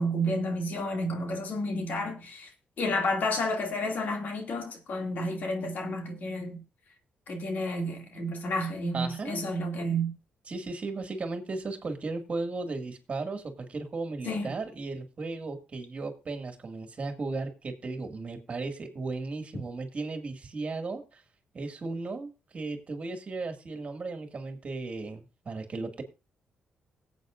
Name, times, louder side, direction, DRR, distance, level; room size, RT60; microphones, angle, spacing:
voice 1, 0.0-2.5 2.8-6.6 7.3-10.1 14.3-14.5, equal, 65° left, 2.5 m, -31 dB
voice 2, 8.9-9.4 10.5-21.2 21.5-26.0, right 3 dB, 45° right, 2.1 m, -36 dB
17.5 x 8.2 x 2.6 m
cardioid pair, 75°, 3 cm